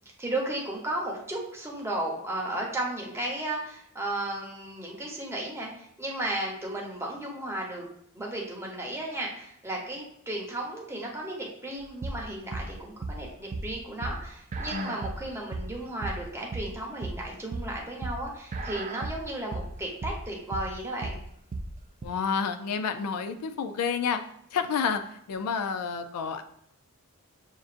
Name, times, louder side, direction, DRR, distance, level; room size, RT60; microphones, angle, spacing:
voice 1, 0.2-7.9 8.1-21.2, right 1 dB, 10° right, -2 dB, 0.8 m, -34 dB
sound 1, 11.8-22.0, right 2 dB, 35° right, 0.3 m, -35 dB
voice 2, 22.0-26.4, left 6 dB, 85° left, 8 dB, 0.4 m, -30 dB
6.4 x 2.5 x 2.5 m, 0.72 s
head